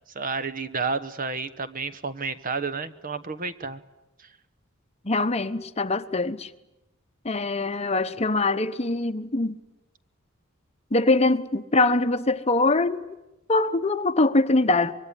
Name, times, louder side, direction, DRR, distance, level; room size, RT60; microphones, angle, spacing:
voice 1, 0.1-3.8 4.2-4.3, right 4 dB, 40° right, 1.2 m, -31 dB
voice 2, 5.0-6.5 7.2-9.5 10.9-13.0 13.5-14.9, left 2 dB, 30° left, 0.9 m, -23 dB
25.0 x 22.5 x 9.8 m
head